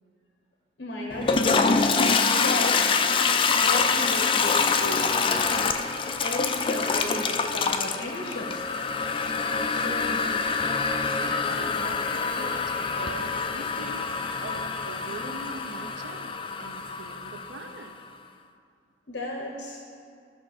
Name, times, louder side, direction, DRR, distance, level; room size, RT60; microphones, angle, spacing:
voice 1, 0.8-1.7 2.4-2.8 3.6-5.0 6.2-8.6 19.1-19.8, left 2 dB, 65° left, -1 dB, 1.0 m, -34 dB
Toilet flush, 1.1-17.9, left 4 dB, 30° left, 0.4 m, -25 dB
voice 2, 9.7-10.5 11.2-14.2 14.4-18.0, right 3 dB, 85° right, 6 dB, 0.6 m, -42 dB
12.5 x 5.6 x 4.2 m, 2.3 s
head